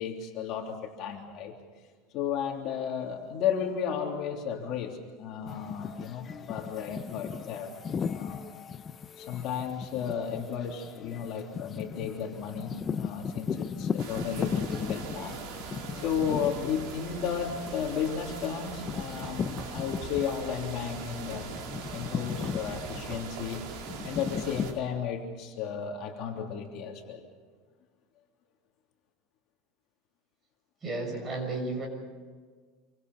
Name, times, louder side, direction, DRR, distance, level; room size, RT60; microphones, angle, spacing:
voice 1, 0.0-1.5 2.1-7.7 7.9-8.5 9.2-15.4 15.9-21.5 21.9-23.6 24.0-27.3, left 7 dB, 50° left, 1 dB, 3.3 m, -33 dB
sound 1, 5.5-20.6 21.0-24.8, left 6 dB, 25° left, 0.7 m, -37 dB
Content warning, 14.0-24.7, right 5 dB, 65° right, 4.4 m, -41 dB
sound 2, 18.9-19.8 22.4-23.4, right 4 dB, 40° right, 2.3 m, -46 dB
voice 2, 30.8-31.9, right 2 dB, 20° right, 2 dB, 6.6 m, -33 dB
27.0 x 25.0 x 5.5 m, 1.5 s
cardioid pair, 155°, 0 cm